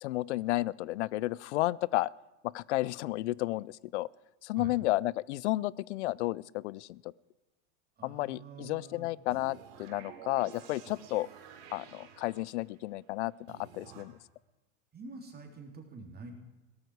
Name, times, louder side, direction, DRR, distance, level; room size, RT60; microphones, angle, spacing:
voice 1, 0.0-2.1 2.4-4.1 4.4-7.1 8.0-11.3 11.7-14.1, left 17 dB, 70° left, 25 dB, 0.5 m, -32 dB
voice 2, 8.0-9.1 14.9-16.3, right 3 dB, 25° right, 3 dB, 3.2 m, -46 dB
sound 1, 9.3-12.8 13.5-14.0, right 8 dB, 60° right, 3.0 m, -51 dB
17.5 x 13.5 x 4.8 m, 1.1 s
hypercardioid pair, 100°, 36 cm